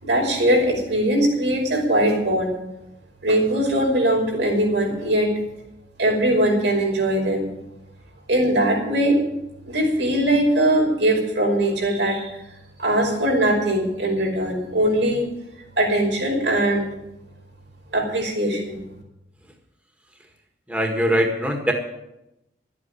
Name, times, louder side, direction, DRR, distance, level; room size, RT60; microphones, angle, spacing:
voice 1, 0.0-2.5 3.2-5.3 6.0-7.5 8.3-9.2 9.7-12.4 12.8-15.3 15.8-16.9 17.9-18.8, right 1 dB, 85° right, -1 dB, 5.3 m, -21 dB
voice 2, 20.7-21.7, equal, 10° right, 2 dB, 1.7 m, -21 dB
12.5 x 8.6 x 9.7 m, 0.90 s
head